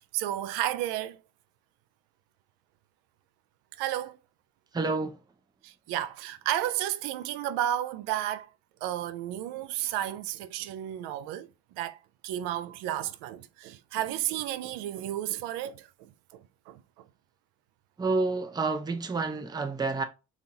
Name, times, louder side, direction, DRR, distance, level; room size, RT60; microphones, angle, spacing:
voice 1, 0.1-1.2 3.8-4.2 5.6-8.5 8.8-17.1, right 12 dB, 80° right, 0.5 m, -33 dB
voice 2, 4.7-5.2 18.0-20.0, right 3 dB, 10° right, 0.5 m, -29 dB
3.7 x 2.4 x 2.7 m
supercardioid pair, 65°, 39 cm